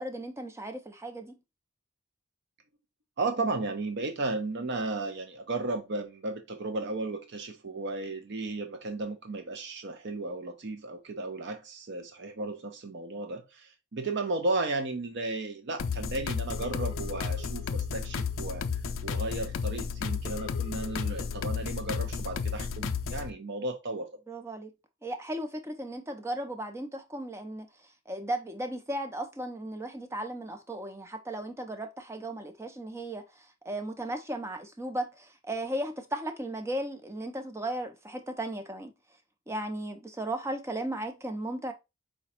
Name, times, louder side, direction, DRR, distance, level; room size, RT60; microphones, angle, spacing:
voice 1, 0.0-1.3 24.3-24.7 25.0-27.7 28.1-38.9 39.5-41.7, right 1 dB, 15° right, 0.6 m, -36 dB
voice 2, 3.2-24.1, right 2 dB, 55° right, 0.6 m, -34 dB
sound 1, 15.8-23.3, left 6 dB, 65° left, 0.4 m, -33 dB
4.9 x 2.2 x 4.2 m
head